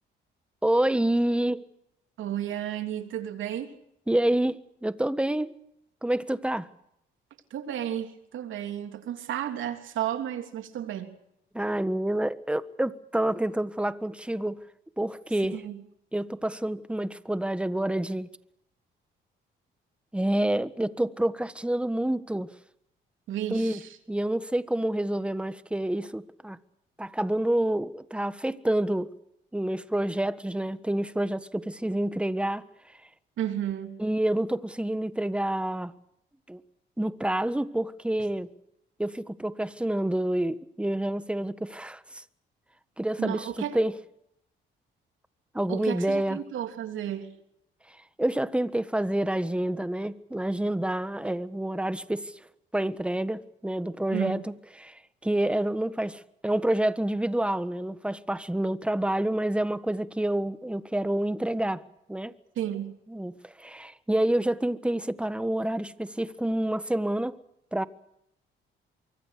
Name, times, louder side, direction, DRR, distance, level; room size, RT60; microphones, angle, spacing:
voice 1, 0.6-1.6 4.1-5.5 6.0-6.7 11.5-14.6 15.0-15.6 16.1-18.3 20.1-22.5 23.5-23.8 24.1-26.6 27.0-29.1 29.5-32.6 34.0-35.9 36.5-36.6 37.0-38.5 39.0-42.2 43.0-43.5 43.7-43.9 45.5-46.4 48.2-52.3 52.7-54.5 54.8-61.8 62.1-62.3 63.1-67.4 67.7-67.8, right 1 dB, 5° right, 1.5 m, -28 dB
voice 2, 2.2-3.7 7.5-11.2 15.5-15.8 23.3-24.0 33.4-34.0 43.2-43.8 45.7-47.4 54.1-54.4 62.5-63.0, right 11 dB, 80° right, 3.2 m, -33 dB
24.5 x 24.0 x 6.7 m
cardioid pair, 90°, 20 cm